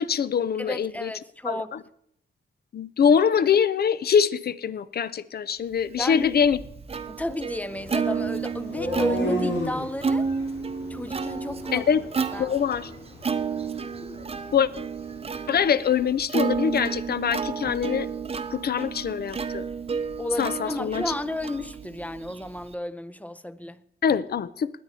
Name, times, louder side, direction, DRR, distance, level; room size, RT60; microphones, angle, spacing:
voice 1, 0.0-1.1 1.4-1.8 2.7-6.6 11.7-12.0 12.4-12.9 14.5-14.7 15.5-18.1 18.5-19.6 20.4-21.1 24.0-24.7, left 7 dB, 60° left, 0.6 m, -23 dB
voice 2, 0.6-1.7 6.0-6.3 7.1-10.3 10.9-11.9 12.3-12.5 20.2-23.8, left 1 dB, 10° left, 0.5 m, -32 dB
Plucked string instrument, 6.0-22.7, right 5 dB, 30° right, 0.7 m, -31 dB
sound 1, 7.7-15.6, left 1 dB, 90° left, 4.9 m, -35 dB
19.5 x 8.5 x 4.2 m
wide cardioid pair, 125°, 18 cm